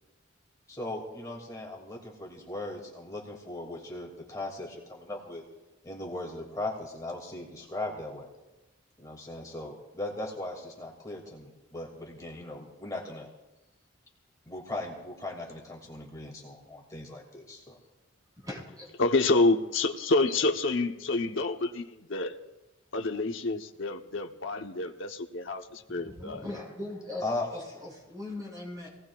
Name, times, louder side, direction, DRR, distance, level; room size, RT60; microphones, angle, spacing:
voice 1, 0.7-5.4 5.8-8.3 9.0-13.3 14.5-17.8 27.2-27.5, left 2 dB, 20° left, -1 dB, 2.3 m, -38 dB
voice 2, 18.4-18.9 25.9-27.2 27.5-28.9, left 2 dB, 20° right, -3 dB, 5.8 m, -40 dB
voice 3, 19.0-22.4 22.9-26.4, left 2 dB, 75° left, 4 dB, 0.9 m, -28 dB
27.0 x 18.0 x 2.4 m, 1.0 s
head